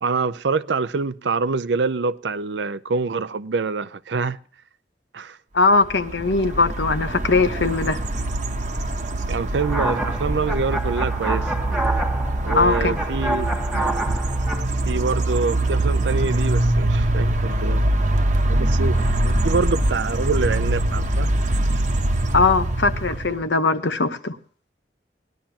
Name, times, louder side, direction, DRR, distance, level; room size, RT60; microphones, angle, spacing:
voice 1, 0.0-4.4 5.1-5.4 9.3-11.5 12.4-13.5 14.9-17.8 18.5-21.3, right 4 dB, 90° right, 0.6 m, -25 dB
voice 2, 5.5-8.0 12.5-13.0 22.3-24.4, left 3 dB, 90° left, 1.0 m, -20 dB
sound 1, 5.8-23.4, right 1 dB, 45° right, 0.9 m, -23 dB
sound 2, 9.6-14.6, right 2 dB, 5° right, 1.1 m, -28 dB
19.0 x 11.5 x 2.9 m
head